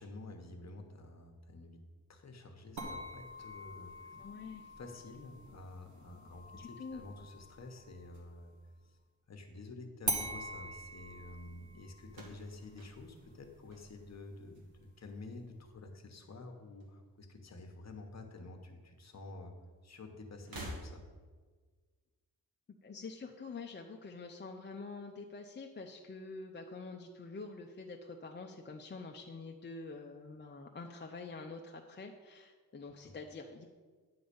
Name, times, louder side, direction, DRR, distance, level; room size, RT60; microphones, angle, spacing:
voice 1, 0.0-1.8 2.1-4.2 4.8-8.5 8.8-9.0 9.3-14.7 15.0-19.5 19.8-21.0, left 2 dB, 50° left, 4 dB, 1.1 m, -50 dB
sound 1, 2.8-8.4 10.0-15.0, right 2 dB, 55° right, 1.3 m, -44 dB
voice 2, 4.2-4.7 6.5-7.0 22.8-33.7, left 4 dB, 30° left, 2 dB, 0.5 m, -46 dB
sound 2, 12.1-14.4 14.7-15.3 16.4-17.4 17.6-17.8 18.9-19.0 20.4-21.4, equal, 80° right, 1.7 m, -49 dB
9.6 x 3.9 x 6.9 m, 1.5 s
wide cardioid pair, 145°, 35 cm